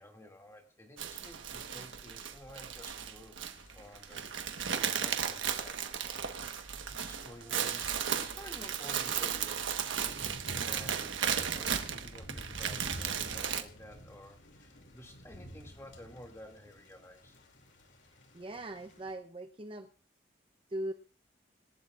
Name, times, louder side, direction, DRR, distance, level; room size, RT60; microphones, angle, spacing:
voice 1, 0.0-3.4 3.7-4.2 4.7-9.8 10.6-17.4, left 1 dB, 15° left, 2 dB, 2.4 m, -52 dB
sound 1, 1.0-13.6, right 8 dB, 85° right, 1.3 m, -35 dB
Thunder / Rain, 3.5-19.1, equal, 70° left, 2.7 m, -51 dB
voice 2, 18.3-19.9 20.7-20.9, right 1 dB, 30° right, 7 dB, 0.7 m, -40 dB
26.5 x 12.5 x 2.5 m, 0.39 s
head